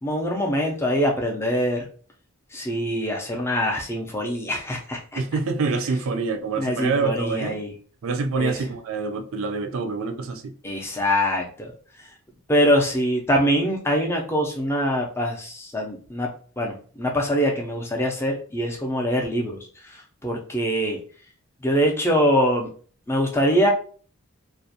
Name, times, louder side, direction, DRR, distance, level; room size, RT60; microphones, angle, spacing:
voice 1, 0.0-1.9 2.5-5.0 6.6-7.7 8.4-8.6 10.6-11.7 12.5-16.3 16.6-19.6 20.2-21.0 21.6-22.7 23.1-23.7, equal, 10° left, 0.4 m, -23 dB
voice 2, 5.2-7.6 8.0-10.5, right 4 dB, 65° right, 0.4 m, -26 dB
2.4 x 2.1 x 2.6 m
head